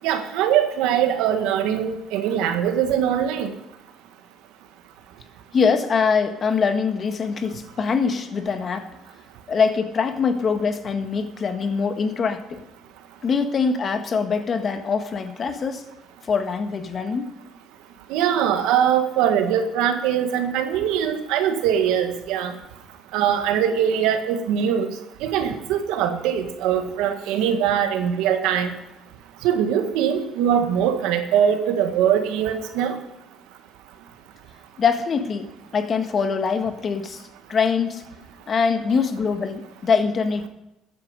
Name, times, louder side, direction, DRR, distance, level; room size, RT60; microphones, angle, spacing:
voice 1, 0.0-3.5 18.1-22.5 23.1-24.9 25.2-28.7 29.4-32.9, right 9 dB, 85° right, 7 dB, 1.7 m, -22 dB
voice 2, 5.5-8.9 9.5-12.6 13.2-15.8 16.2-17.4 34.8-37.2 37.5-38.0 38.5-40.5, left 5 dB, 45° left, 8 dB, 1.6 m, -23 dB
14.0 x 10.0 x 5.4 m, 0.90 s
supercardioid pair, 80°, 0 cm